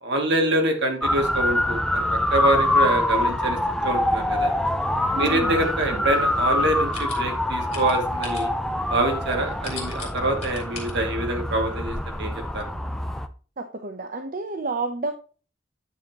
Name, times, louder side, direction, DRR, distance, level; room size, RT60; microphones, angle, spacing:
voice 1, 0.0-4.5 5.2-8.5 8.9-12.6, right 1 dB, 65° right, 3 dB, 2.3 m, -25 dB
Motor vehicle (road) / Siren, 1.0-13.3, left 1 dB, 5° left, 0.6 m, -25 dB
voice 2, 5.1-5.7 5.9-6.1 13.6-15.1, right 2 dB, 50° right, 6 dB, 0.9 m, -30 dB
sound 1, 5.4-10.9, left 4 dB, 35° left, 3.2 m, -42 dB
9.2 x 7.2 x 2.9 m, 0.37 s
head